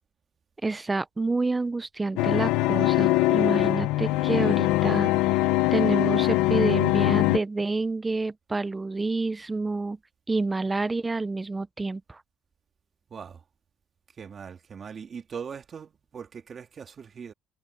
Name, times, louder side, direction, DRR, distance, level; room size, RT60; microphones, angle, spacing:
voice 1, 0.6-5.1 5.7-10.0 10.3-12.2, right 3 dB, 15° right, 0.6 m, -28 dB
sound 1, 2.2-7.4, left 18 dB, 85° left, 0.9 m, -22 dB
voice 2, 13.1-13.4 14.2-17.3, right 6 dB, 35° right, 2.4 m, -40 dB
cardioid pair, 120°, 0 cm